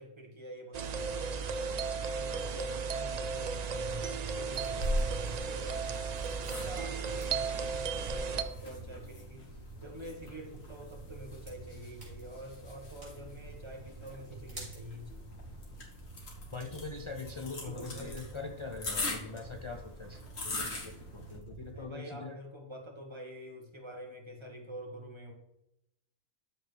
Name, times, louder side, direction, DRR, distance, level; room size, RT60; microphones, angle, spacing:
voice 1, 0.0-1.8 2.1-5.9 6.4-15.3 17.6-18.2 21.7-25.3, equal, 20° right, 1 dB, 1.4 m, -47 dB
sound 1, 0.7-8.4, right 5 dB, 65° right, 0.4 m, -35 dB
sound 2, 3.3-21.9, right 3 dB, 45° right, 3.6 m, -51 dB
sound 3, 4.8-21.4, left 1 dB, 75° left, 1.8 m, -42 dB
voice 2, 16.5-22.4, left 3 dB, 50° left, 4 dB, 0.3 m, -42 dB
13.0 x 4.4 x 3.3 m, 0.85 s
omnidirectional pair, 1.3 m